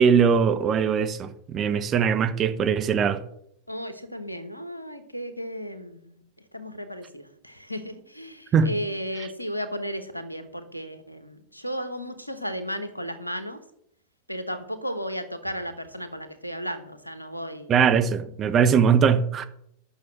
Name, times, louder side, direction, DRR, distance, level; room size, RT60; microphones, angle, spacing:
voice 1, 0.0-3.2 8.5-8.7 17.7-19.4, right 6 dB, 30° right, 0.9 m, -21 dB
voice 2, 3.7-6.2 6.5-13.6 14.3-17.8, equal, 90° left, 1.2 m, -34 dB
8.7 x 6.2 x 7.5 m
figure-of-eight pair, 90°, 0 cm